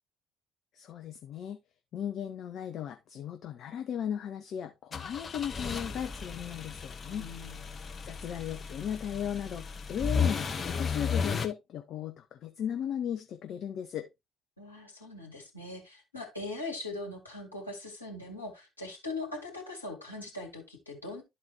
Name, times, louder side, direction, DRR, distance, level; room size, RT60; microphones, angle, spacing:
voice 1, 0.7-1.6 1.9-7.3 8.0-14.1, left 9 dB, 50° left, 0.7 m, -36 dB
sound 1, 4.9-11.5, left 6 dB, 35° left, 1.2 m, -34 dB
voice 2, 7.1-7.8 14.6-21.2, left 2 dB, 85° left, 1.8 m, -41 dB
12.5 x 4.3 x 2.9 m
figure-of-eight pair, 50°, 0 cm